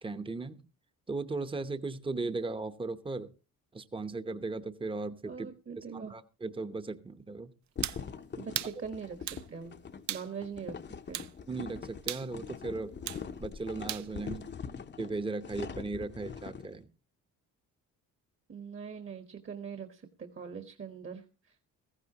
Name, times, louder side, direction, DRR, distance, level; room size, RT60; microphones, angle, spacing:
voice 1, 0.0-0.6 1.1-3.3 3.7-5.5 5.8-7.5 11.5-12.9 13.4-14.5 15.0-16.9, right 3 dB, 15° right, 10 dB, 0.9 m, -37 dB
voice 2, 5.3-6.1 8.4-9.7 10.1-10.7 11.1-11.2 18.5-21.6, right 6 dB, 35° right, 7 dB, 1.3 m, -42 dB
sound 1, 7.8-16.7, left 6 dB, 30° left, 0.8 m, -43 dB
sound 2, 7.8-8.0 8.5-8.8 9.3-9.4 10.1-10.3 11.1-11.3 12.1-12.3 13.1-13.2 13.9-14.1, right 12 dB, 55° right, 0.5 m, -35 dB
15.0 x 15.0 x 2.9 m, 0.33 s
cardioid pair, 85°, 34 cm